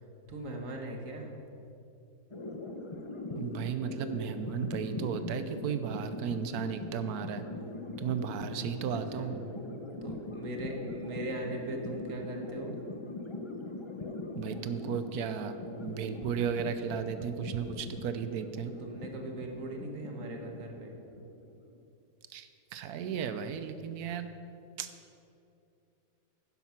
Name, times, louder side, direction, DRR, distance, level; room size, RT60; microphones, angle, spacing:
voice 1, 0.3-1.4 8.9-9.3 10.0-12.8 18.8-20.9, right 1 dB, 55° right, 2 dB, 1.8 m, -39 dB
sound 1, 2.3-21.8, left 2 dB, 30° left, 0.6 m, -41 dB
voice 2, 3.4-7.4 8.0-9.3 14.4-15.5 15.8-18.7 22.3-24.3 24.8-24.9, right 7 dB, 75° right, 10 dB, 1.2 m, -34 dB
11.5 x 9.9 x 5.9 m, 2.7 s
omnidirectional pair, 1.6 m